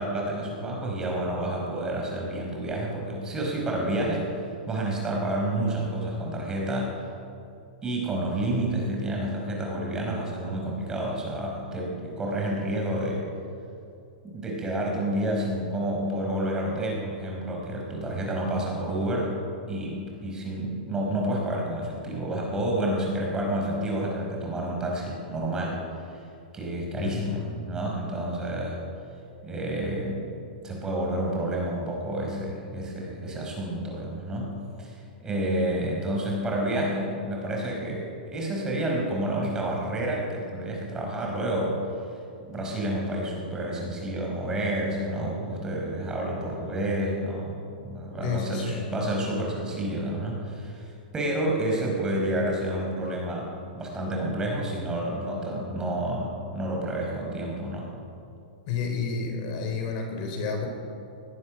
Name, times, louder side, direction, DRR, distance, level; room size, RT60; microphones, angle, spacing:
voice 1, 0.0-4.3 4.7-7.0 7.8-13.2 14.2-19.3 19.7-25.8 26.5-28.8 29.4-30.3 30.6-34.5 34.8-41.8 42.4-57.9, right 1 dB, 15° right, -1 dB, 4.9 m, -29 dB
voice 2, 27.0-27.4 48.2-48.9 58.7-60.7, left 5 dB, 40° left, 4 dB, 4.1 m, -30 dB
22.0 x 19.0 x 6.4 m, 2.6 s
hypercardioid pair, 150°, 5 cm